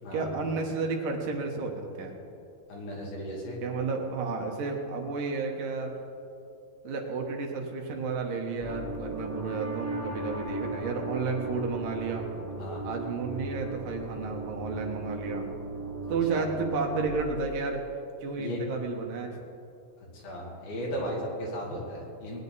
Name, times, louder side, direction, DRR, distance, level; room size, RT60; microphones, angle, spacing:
voice 1, 0.1-2.1 3.6-5.9 6.8-12.2 12.8-15.5 16.1-17.9 18.2-19.3, right 4 dB, 70° right, 2 dB, 2.7 m, -32 dB
voice 2, 2.7-3.6 12.6-12.9 16.3-16.5 18.4-18.6 20.1-22.4, equal, 85° left, -3 dB, 4.6 m, -36 dB
sound 1, 8.6-17.1, right 2 dB, 5° right, 1.4 m, -37 dB
19.5 x 10.5 x 4.1 m, 2.7 s
omnidirectional pair, 4.1 m